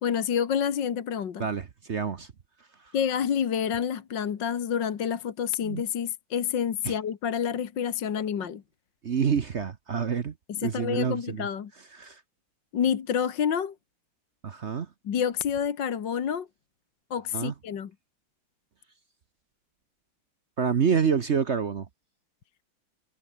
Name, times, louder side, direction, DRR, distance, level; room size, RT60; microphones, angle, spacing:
voice 1, 0.0-1.5 2.9-8.6 10.6-11.7 12.7-13.8 15.1-16.5 17.1-17.9, left 8 dB, 60° left, 2.1 m, -28 dB
voice 2, 1.4-2.3 2.8-2.9 5.6-5.8 6.8-7.0 9.0-10.3 10.6-11.5 11.9-12.2 14.4-14.9 17.3-17.5 20.6-21.9, right 6 dB, 45° right, 1.0 m, -27 dB
omnidirectional pair, 2.2 m